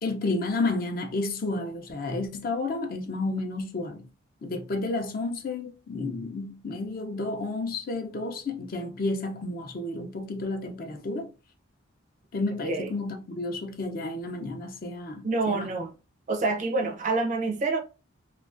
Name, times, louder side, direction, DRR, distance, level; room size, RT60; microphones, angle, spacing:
voice 1, 0.0-4.1 4.4-11.3 12.3-15.7, left 2 dB, 45° left, 0.4 m, -31 dB
voice 2, 15.2-15.9 16.3-17.8, right 3 dB, 35° right, 0.4 m, -27 dB
2.3 x 2.3 x 2.4 m
head